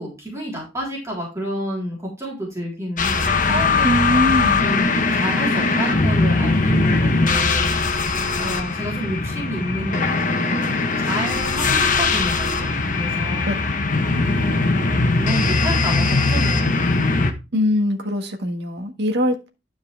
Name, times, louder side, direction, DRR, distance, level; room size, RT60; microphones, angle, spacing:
voice 1, 0.0-4.2 4.6-8.0 8.4-13.5 14.1-16.8, equal, 15° right, -4 dB, 3.7 m, -30 dB
sound 1, 3.0-17.3, left 3 dB, 45° left, 1.1 m, -20 dB
voice 2, 3.8-4.6 13.5-13.6 17.5-19.5, equal, 65° right, 5 dB, 1.6 m, -22 dB
12.0 x 5.2 x 3.4 m, 0.28 s
head